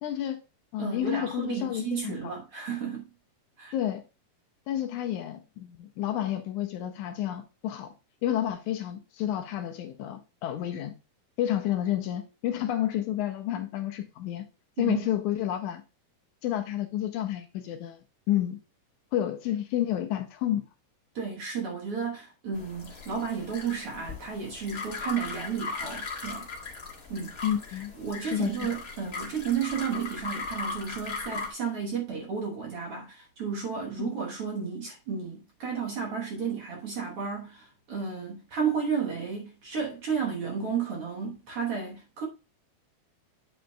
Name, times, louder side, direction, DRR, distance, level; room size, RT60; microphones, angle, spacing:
voice 1, 0.0-0.4 0.7-2.3 3.7-4.0 4.7-7.9 8.2-11.0 11.4-14.4 14.8-15.8 16.4-18.0 18.3-18.6 19.1-20.6 27.4-27.9 28.2-28.6 34.0-34.1, left 12 dB, 80° left, 1.9 m, -30 dB
voice 2, 0.8-3.1 3.6-3.7 14.8-15.1 21.2-26.5 27.1-27.3 28.0-42.2, right 6 dB, 55° right, 1.8 m, -32 dB
sound 1, 22.5-31.5, left 4 dB, 35° left, 1.5 m, -38 dB
8.8 x 7.8 x 2.3 m
omnidirectional pair, 3.8 m